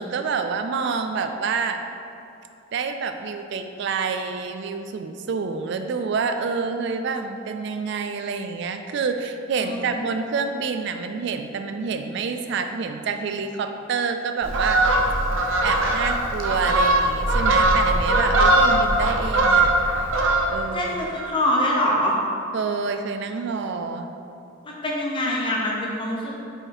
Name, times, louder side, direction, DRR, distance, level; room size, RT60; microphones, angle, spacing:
voice 1, 0.0-1.8 2.7-14.8 15.6-19.7 20.5-20.9 22.5-24.1, right 5 dB, 60° right, 7 dB, 0.3 m, -28 dB
Fowl, 14.4-20.8 21.1-21.4, right 2 dB, 80° right, 0.7 m, -20 dB
voice 2, 20.7-22.2 24.6-26.4, left 1 dB, 25° left, -2 dB, 0.8 m, -24 dB
5.1 x 4.8 x 4.2 m, 2.6 s
head